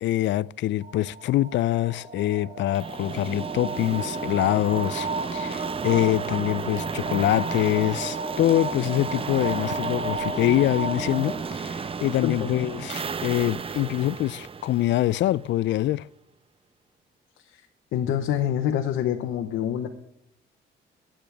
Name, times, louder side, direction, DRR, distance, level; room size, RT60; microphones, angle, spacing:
voice 1, 0.0-16.1, left 14 dB, 65° left, 0.4 m, -25 dB
sound 1, 0.8-11.4, right 3 dB, 45° right, 3.3 m, -33 dB
sound 2, 2.7-15.6, right 5 dB, 30° right, 0.5 m, -34 dB
voice 2, 17.9-19.9, left 10 dB, 85° left, 1.0 m, -26 dB
20.5 x 8.8 x 3.5 m
cardioid pair, 90°, 20 cm